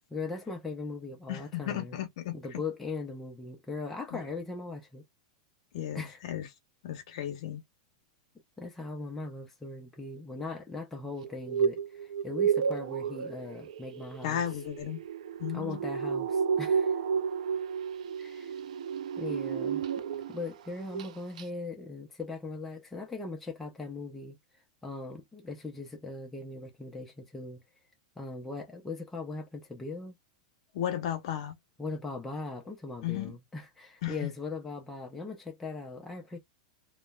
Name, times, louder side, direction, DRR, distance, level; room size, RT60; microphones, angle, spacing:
voice 1, 0.1-2.0 2.3-5.0 5.9-6.2 8.6-14.4 15.5-17.0 18.2-18.5 19.2-19.8 20.3-24.4 24.8-27.6 28.2-30.1 31.8-36.4, left 3 dB, 5° left, 0.5 m, -39 dB
voice 2, 1.3-2.4 4.1-4.2 5.7-6.5 6.8-7.6 14.2-15.0 15.4-15.8 30.7-31.6 33.0-33.4 34.0-34.3, left 11 dB, 55° left, 0.8 m, -34 dB
sound 1, 11.2-20.5 20.8-21.1 21.4-21.5, right 7 dB, 85° right, 0.4 m, -32 dB
2.9 x 2.1 x 2.2 m
supercardioid pair, 165°, 4 cm